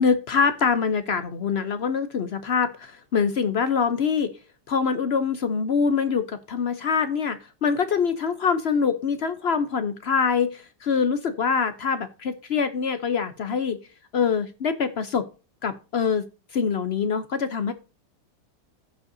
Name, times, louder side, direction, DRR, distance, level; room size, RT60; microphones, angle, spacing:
voice 1, 0.0-4.3 4.7-13.8 14.1-15.3 15.6-16.2 16.5-17.7, left 6 dB, 65° left, 10 dB, 0.6 m, -24 dB
15.5 x 5.4 x 2.6 m, 0.32 s
omnidirectional pair, 1.9 m